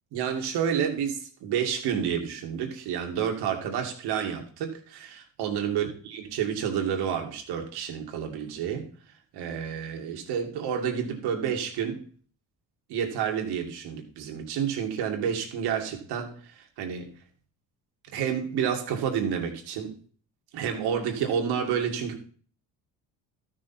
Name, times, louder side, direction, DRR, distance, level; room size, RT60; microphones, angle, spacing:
voice 1, 0.1-8.9 9.3-12.0 12.9-17.1 18.1-19.9 20.5-22.2, right 8 dB, 85° right, 2.3 m, -29 dB
13.0 x 6.3 x 4.3 m
cardioid pair, 115°, 39 cm